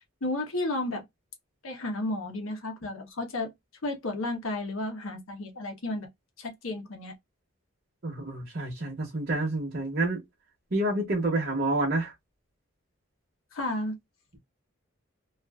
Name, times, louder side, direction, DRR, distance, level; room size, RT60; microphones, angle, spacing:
voice 1, 0.2-1.0 1.6-3.5 3.8-6.1 6.4-7.1 13.5-13.9, left 2 dB, 75° left, 0.8 m, -32 dB
voice 2, 8.0-10.2 10.7-12.1, right 2 dB, 50° right, 0.8 m, -28 dB
2.5 x 2.5 x 2.2 m
head